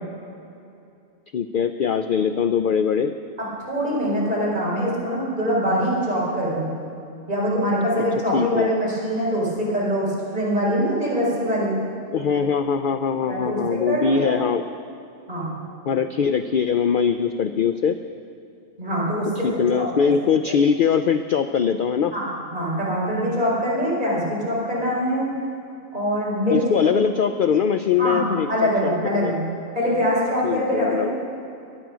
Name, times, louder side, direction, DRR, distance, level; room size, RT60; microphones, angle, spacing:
voice 1, 1.3-3.1 8.3-8.7 12.1-14.6 15.9-18.0 19.4-22.1 26.5-29.3 30.4-31.1, left 7 dB, 60° left, 9 dB, 0.5 m, -22 dB
voice 2, 3.4-6.7 7.3-11.7 13.3-14.4 15.3-15.6 18.8-20.1 20.5-20.6 22.1-25.3 25.9-26.9 28.0-29.4 29.7-31.1, equal, 35° right, -6 dB, 5.1 m, -24 dB
22.5 x 9.2 x 6.2 m, 2.6 s
omnidirectional pair, 1.3 m